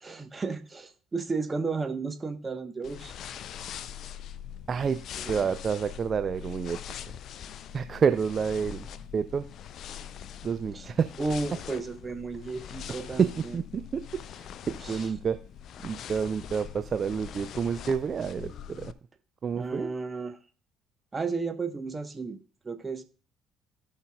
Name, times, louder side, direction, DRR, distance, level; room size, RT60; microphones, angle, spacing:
voice 1, 0.0-3.1 5.2-5.4 10.7-10.9 11.2-13.6 14.8-15.0 19.6-20.4 21.1-22.4 22.6-23.0, right 4 dB, 25° right, 9 dB, 1.1 m, -33 dB
sound 1, 2.8-18.9, left 9 dB, 55° left, 0.4 m, -42 dB
voice 2, 4.7-5.0 5.3-6.8 7.7-8.9 9.1-9.5 10.4-11.1 13.2-15.4 15.8-18.9 19.4-19.9, right 6 dB, 40° right, 12 dB, 0.4 m, -29 dB
16.5 x 5.6 x 2.3 m, 0.38 s
figure-of-eight pair, 50°, 0 cm